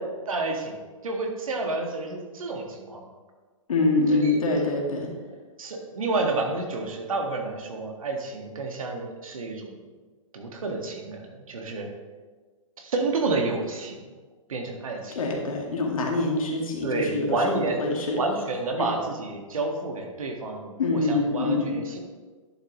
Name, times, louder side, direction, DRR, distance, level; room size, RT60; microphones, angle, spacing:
voice 1, 0.3-0.8 1.0-3.0 4.1-4.4 5.6-9.8 10.3-11.9 12.8-14.0 14.5-15.2 16.8-17.8 18.1-22.0, right 3 dB, 75° right, 2 dB, 1.8 m, -29 dB
voice 2, 3.7-5.1 15.2-18.2 18.8-18.9 20.8-21.7, left 3 dB, 80° left, 0 dB, 2.1 m, -25 dB
10.5 x 7.0 x 3.1 m, 1.4 s
hypercardioid pair, 135°, 18 cm